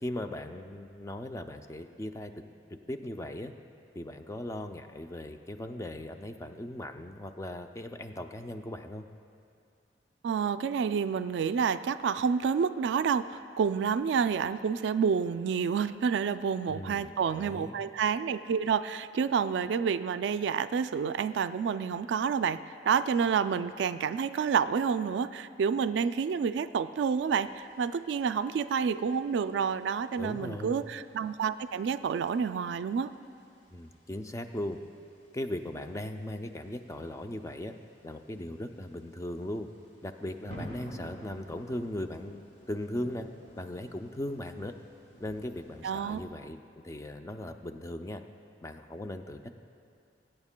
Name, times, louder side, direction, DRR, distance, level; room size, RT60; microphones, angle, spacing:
voice 1, 0.0-2.4 2.7-3.5 4.0-9.1 16.7-17.8 30.2-30.8 33.7-34.8 35.3-37.7 38.0-39.7 40.0-43.3 43.6-44.7 45.2-46.6 46.8-48.2 48.6-49.5, left 1 dB, 15° left, 6 dB, 0.4 m, -38 dB
voice 2, 10.2-22.6 22.9-33.1 45.8-46.2, right 6 dB, 85° right, 12 dB, 0.3 m, -29 dB
sound 1, 27.0-46.2, equal, 40° left, 1.4 m, -53 dB
21.5 x 8.8 x 2.2 m, 2.5 s
head